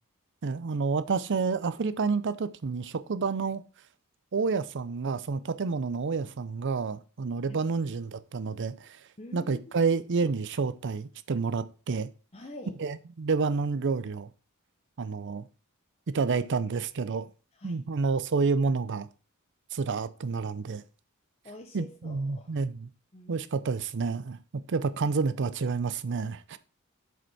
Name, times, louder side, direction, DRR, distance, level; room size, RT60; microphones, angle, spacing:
voice 1, 0.4-3.6 4.3-12.1 12.8-14.3 15.0-15.5 16.1-17.3 17.6-19.1 19.7-20.8 21.7-22.9 23.3-24.4 24.7-26.6, right 4 dB, 55° right, 0.5 m, -29 dB
voice 2, 9.2-10.0 12.3-12.8 17.5-17.8 21.4-22.6 23.1-23.4, left 1 dB, 30° left, 1.1 m, -46 dB
7.9 x 5.1 x 5.9 m
head